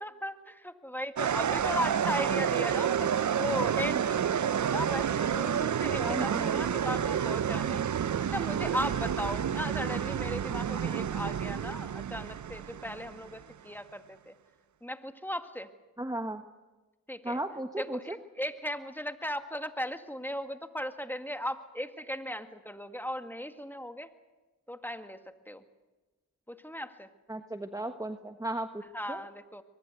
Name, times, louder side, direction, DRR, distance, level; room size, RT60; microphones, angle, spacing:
voice 1, 0.0-4.2 4.7-7.8 8.3-14.3 14.8-15.7 17.1-17.4 17.8-24.1 24.7-25.6 26.5-27.1 28.9-29.6, equal, 5° left, 7 dB, 2.0 m, -37 dB
sound 1, 1.2-13.4, right 8 dB, 55° right, 0.7 m, -30 dB
voice 2, 6.0-6.6 16.0-16.4 17.2-18.2 27.3-28.8 29.1-29.2, right 1 dB, 10° right, 7 dB, 1.4 m, -35 dB
23.0 x 20.5 x 8.0 m, 1.2 s
cardioid pair, 50°, 36 cm